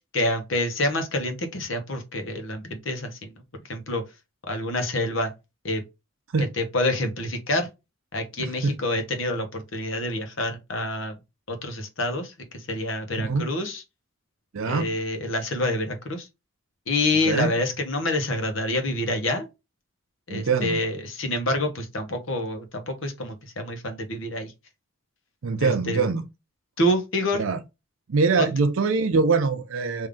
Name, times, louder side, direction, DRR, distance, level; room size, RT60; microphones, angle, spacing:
voice 1, 0.1-3.3 3.7-4.0 4.5-5.3 5.6-5.8 6.4-7.7 8.1-11.2 11.5-13.8 14.6-16.3 16.9-19.5 20.3-24.5 25.6-26.0 26.8-27.4 28.4-28.5, left 1 dB, 65° left, 1.0 m, -27 dB
voice 2, 8.4-8.8 13.2-13.5 14.5-14.9 17.3-17.5 20.3-20.9 25.4-26.3 27.3-27.6 28.1-30.1, right 4 dB, 70° right, 0.5 m, -23 dB
3.6 x 2.7 x 3.4 m
head